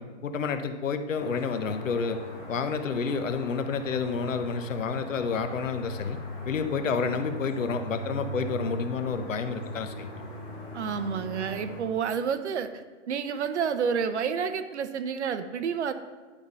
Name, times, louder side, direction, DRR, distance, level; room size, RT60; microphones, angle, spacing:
voice 1, 0.0-2.2 2.5-6.2 6.5-10.1, left 5 dB, 85° left, 8 dB, 0.8 m, -29 dB
sound 1, 1.1-11.8, equal, 15° left, 1.3 m, -40 dB
voice 2, 10.7-12.7 13.1-15.9, right 6 dB, 65° right, 10 dB, 0.7 m, -29 dB
10.0 x 3.5 x 5.3 m, 1.4 s
hypercardioid pair, 160°, 37 cm